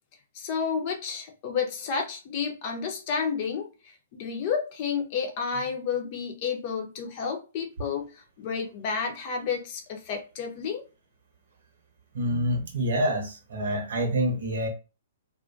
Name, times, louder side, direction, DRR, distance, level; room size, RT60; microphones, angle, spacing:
voice 1, 0.3-10.8, left 6 dB, 40° left, 0.6 m, -31 dB
voice 2, 12.1-14.7, equal, 65° right, 0.8 m, -27 dB
2.4 x 2.2 x 2.5 m
figure-of-eight pair, 115°, 0 cm